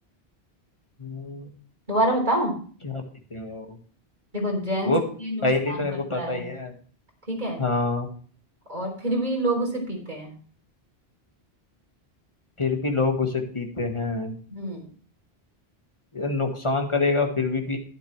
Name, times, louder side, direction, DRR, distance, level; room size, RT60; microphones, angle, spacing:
voice 1, 1.0-1.5 2.8-3.0 3.3-3.8 4.8-5.0 5.4-6.7 7.6-8.1 12.6-14.3 16.1-17.8, left 3 dB, 30° left, 3 dB, 1.6 m, -26 dB
voice 2, 1.9-2.6 4.3-6.4 7.3-7.6 8.7-10.3 14.5-14.9, right 1 dB, 45° right, -1 dB, 3.6 m, -27 dB
11.5 x 10.5 x 3.2 m, 0.43 s
omnidirectional pair, 1.1 m